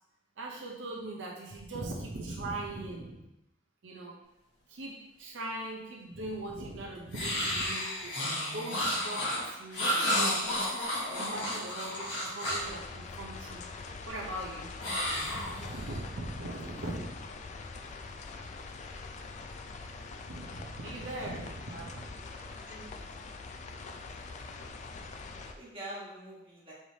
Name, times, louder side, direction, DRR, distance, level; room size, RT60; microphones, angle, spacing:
voice 1, 0.4-3.2 3.8-4.2 4.7-8.2 8.5-14.7 15.3-17.2 20.3-22.1, right 2 dB, 90° right, -1 dB, 0.7 m, -40 dB
sound 1, 7.1-12.7 14.8-16.0, left 1 dB, 75° left, 1.3 m, -32 dB
sound 2, 12.5-25.5, left 3 dB, 40° left, 0.3 m, -44 dB
voice 2, 22.3-22.9 25.3-26.7, right 1 dB, 30° right, -6 dB, 1.2 m, -46 dB
4.8 x 3.2 x 2.8 m, 0.90 s
head